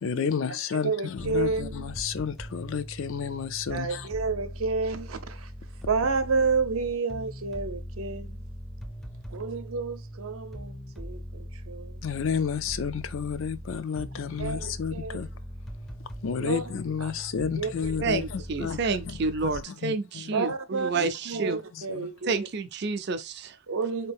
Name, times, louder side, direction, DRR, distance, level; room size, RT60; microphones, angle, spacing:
voice 1, 0.0-4.1 12.0-15.3 16.2-19.2 19.4-20.5 21.0-22.1, left 6 dB, 70° left, 0.4 m, -32 dB
voice 2, 0.7-2.0 3.7-5.5 5.9-8.4 9.3-12.0 14.0-14.1 14.4-15.2 16.3-16.6 17.0-17.1 17.6-18.0 20.3-21.0 21.3-22.5 23.7-24.1, right 4 dB, 85° right, 0.7 m, -30 dB
sound 1, 1.2-19.6, equal, ahead, 0.4 m, -40 dB
voice 3, 18.0-21.6 22.2-23.6, right 4 dB, 50° right, 0.5 m, -29 dB
4.3 x 2.8 x 3.4 m
head